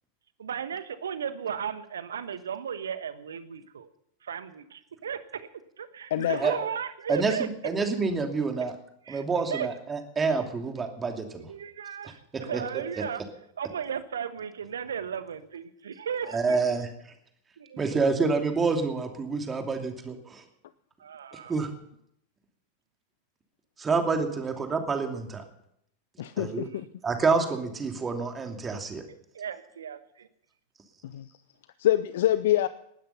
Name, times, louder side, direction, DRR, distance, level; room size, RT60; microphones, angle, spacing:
voice 1, 0.4-3.9 4.2-5.5 5.8-7.5 9.1-9.2 9.5-9.7 11.4-13.2 13.6-16.6 17.6-17.9 21.0-21.5 29.3-30.3, right 7 dB, 65° right, 12 dB, 1.3 m, -35 dB
voice 2, 6.1-6.5 26.2-26.9 31.0-31.4 31.8-32.7, left 13 dB, 55° left, 15 dB, 0.6 m, -26 dB
voice 3, 7.1-8.7 9.1-11.5 12.5-12.6 13.0-13.1 16.3-16.9 17.8-20.4 21.5-21.7 23.8-25.4 26.4-26.7 27.0-29.0, right 4 dB, 15° right, 4 dB, 2.8 m, -27 dB
19.5 x 12.5 x 5.6 m, 0.74 s
figure-of-eight pair, 90°, 0 cm